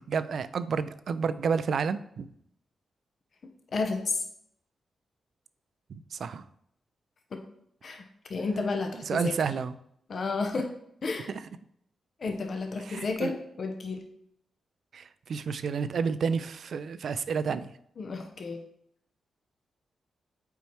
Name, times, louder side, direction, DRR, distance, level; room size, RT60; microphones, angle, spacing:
voice 1, 0.0-2.3 5.9-6.4 8.9-9.8 11.3-11.4 12.8-13.3 14.9-17.7, right 6 dB, 70° right, 14 dB, 0.3 m, -30 dB
voice 2, 3.7-4.3 7.3-7.4 7.8-8.0 8.3-9.4 10.1-10.7 11.0-11.3 12.2-14.1 18.0-18.6, left 3 dB, 60° left, 5 dB, 0.7 m, -31 dB
7.0 x 4.4 x 3.1 m, 0.72 s
supercardioid pair, 45°, 0 cm